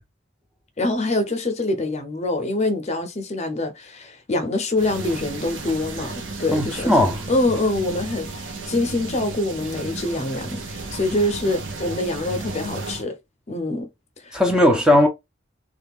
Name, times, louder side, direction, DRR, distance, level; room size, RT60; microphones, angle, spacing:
voice 1, 0.8-6.9 7.3-13.2 13.5-13.9 14.2-14.8, left 2 dB, 35° left, 0.6 m, -25 dB
sound 1, 4.8-13.0, right 3 dB, 75° right, 0.8 m, -33 dB
voice 2, 6.5-7.2 14.3-15.1, left 1 dB, 5° right, 0.5 m, -17 dB
3.2 x 2.4 x 3.5 m
head